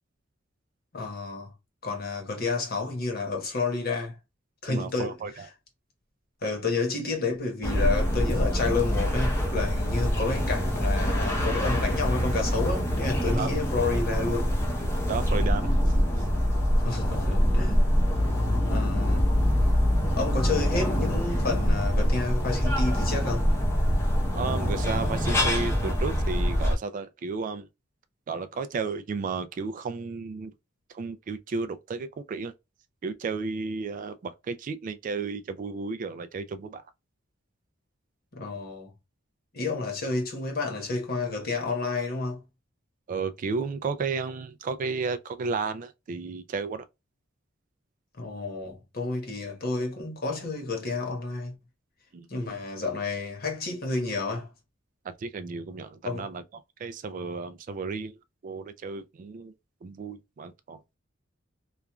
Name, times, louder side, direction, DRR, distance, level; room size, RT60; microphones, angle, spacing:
voice 1, 0.9-1.5 1.8-4.2 4.6-5.1 6.4-14.5 16.8-17.8 18.7-19.2 20.2-23.5 38.3-38.9 39.5-42.4 48.2-51.5 52.3-54.5 56.0-56.3, left 3 dB, 50° left, 1.1 m, -30 dB
voice 2, 4.7-5.5 13.4-13.5 15.1-16.0 24.3-27.7 28.3-30.5 30.9-32.5 33.0-36.8 43.1-46.8 52.1-52.3 55.2-58.2 58.4-59.5 59.8-60.8, right 4 dB, 40° right, 0.3 m, -33 dB
sound 1, 7.6-26.7, equal, 15° left, 0.7 m, -25 dB
3.0 x 2.4 x 2.2 m
head